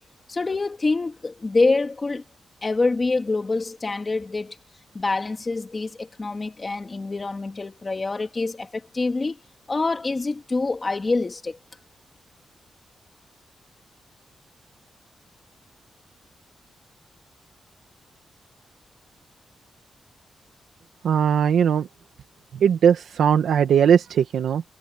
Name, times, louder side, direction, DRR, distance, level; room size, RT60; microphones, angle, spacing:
voice 1, 0.3-2.2 2.6-4.6 4.9-9.4 9.7-11.6, left 3 dB, 25° left, 2.1 m, -25 dB
voice 2, 21.0-21.9 22.6-24.6, right 8 dB, 90° right, 1.3 m, -19 dB
wide cardioid pair, 130°, 0 cm